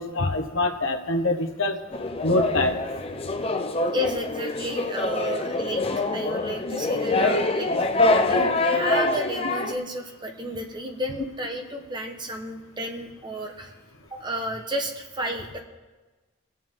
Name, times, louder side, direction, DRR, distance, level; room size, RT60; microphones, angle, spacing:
voice 1, 0.0-1.8 2.2-2.8, left 2 dB, 70° left, 2 dB, 1.2 m, -24 dB
sound 1, 1.9-9.7, left 2 dB, 30° left, 0.6 m, -25 dB
voice 2, 3.9-5.8 6.1-13.7 14.1-15.6, equal, 20° right, 2 dB, 1.2 m, -32 dB
22.5 x 7.6 x 3.8 m, 1.2 s
head